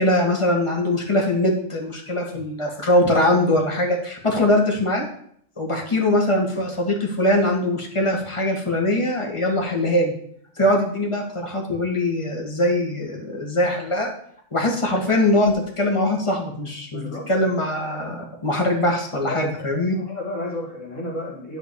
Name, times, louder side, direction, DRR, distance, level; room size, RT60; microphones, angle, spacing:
voice 1, 0.0-5.0 5.6-10.1 10.6-14.1 14.5-20.0, left 1 dB, 25° left, -1 dB, 1.7 m, -22 dB
voice 2, 16.9-17.5 19.2-21.6, left 1 dB, 65° left, -7 dB, 2.2 m, -32 dB
11.0 x 4.0 x 6.7 m, 0.66 s
omnidirectional pair, 1.4 m